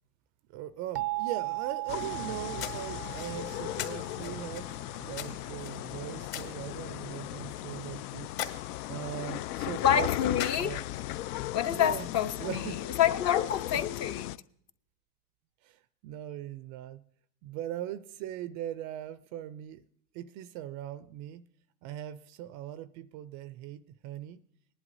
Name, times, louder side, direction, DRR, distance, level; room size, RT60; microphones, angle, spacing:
voice 1, 0.5-4.7 5.0-10.1 10.6-10.8 11.7-12.1 12.4-12.8 13.7-13.8 15.6-17.0 17.4-19.8 20.1-21.5 21.8-24.4, right 12 dB, 40° right, 0.4 m, -40 dB
sound 1, 0.9-5.7, right 21 dB, 90° right, 0.6 m, -38 dB
sound 2, 1.8-11.1, left 11 dB, 55° left, 2.5 m, -44 dB
sound 3, 1.9-14.4, left 15 dB, 70° left, 0.5 m, -37 dB
voice 2, 9.8-10.8 11.5-12.6 13.0-14.3, left 10 dB, 35° left, 0.6 m, -27 dB
19.5 x 11.0 x 2.6 m
supercardioid pair, 125°, 47 cm